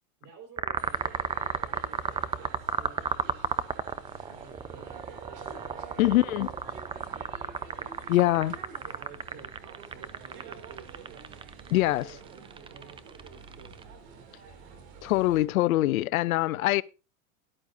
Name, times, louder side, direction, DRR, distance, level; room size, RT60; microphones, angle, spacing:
voice 1, 0.2-3.5 4.3-7.9 8.7-11.4 11.7-14.7, right 5 dB, 45° right, 4.6 m, -53 dB
sound 1, 0.6-13.8, right 6 dB, 15° right, 0.5 m, -33 dB
sound 2, 0.8-15.5, right 5 dB, 65° right, 2.7 m, -48 dB
voice 2, 6.0-6.5 8.1-8.6 11.7-12.1 15.0-16.8, left 17 dB, 90° left, 0.5 m, -23 dB
13.0 x 11.0 x 2.6 m
supercardioid pair, 110°, 41 cm